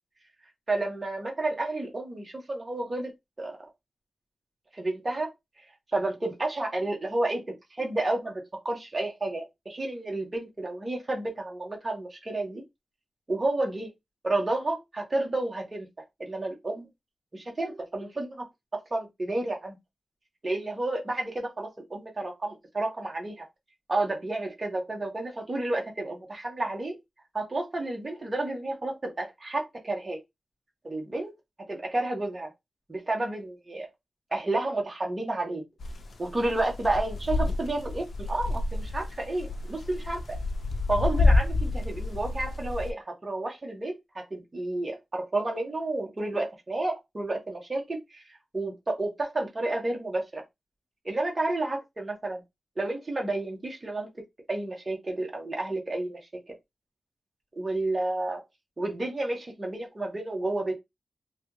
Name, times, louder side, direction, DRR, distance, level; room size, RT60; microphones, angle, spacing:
voice 1, 0.7-3.1 3.4-3.6 4.7-5.3 5.9-12.6 13.3-13.9 14.2-15.9 16.2-16.9 17.3-18.4 18.9-19.8 20.4-23.5 23.9-27.0 27.3-30.2 30.8-31.3 31.7-32.5 32.9-33.9 34.3-35.6 36.2-40.4 40.9-48.2 48.5-50.4 51.0-52.4 52.8-54.1 54.5-56.2 57.6-58.4 58.8-60.7, right 2 dB, 30° right, 1.1 m, -31 dB
sound 1, 35.8-42.9, left 3 dB, 65° left, 0.5 m, -28 dB
3.2 x 2.3 x 3.1 m
wide cardioid pair, 95°, 0 cm